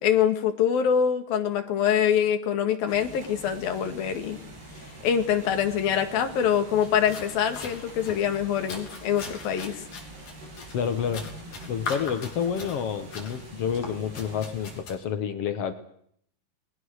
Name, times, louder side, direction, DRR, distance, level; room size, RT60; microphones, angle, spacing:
voice 1, 0.0-4.4 5.0-9.8, left 8 dB, 65° left, 7 dB, 3.7 m, -24 dB
sound 1, 2.9-14.8, right 1 dB, 80° right, 9.9 m, -45 dB
sound 2, 6.8-15.0, left 4 dB, 50° left, 4.6 m, -41 dB
voice 2, 10.7-11.3 11.7-15.7, left 7 dB, 90° left, 9 dB, 1.3 m, -29 dB
29.5 x 20.5 x 6.5 m, 0.67 s
omnidirectional pair, 4.5 m